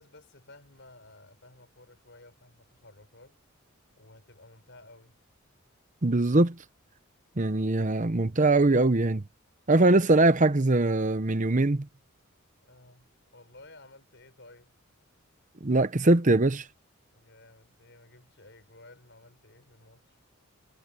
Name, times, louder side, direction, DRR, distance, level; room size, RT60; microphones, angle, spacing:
voice 1, 0.0-3.4 4.0-5.2 12.6-14.7 17.1-20.2, left 2 dB, 55° left, 6.9 m, -54 dB
voice 2, 6.0-6.6 7.4-9.2 9.7-11.9 15.6-16.6, right 2 dB, 35° right, 0.9 m, -22 dB
head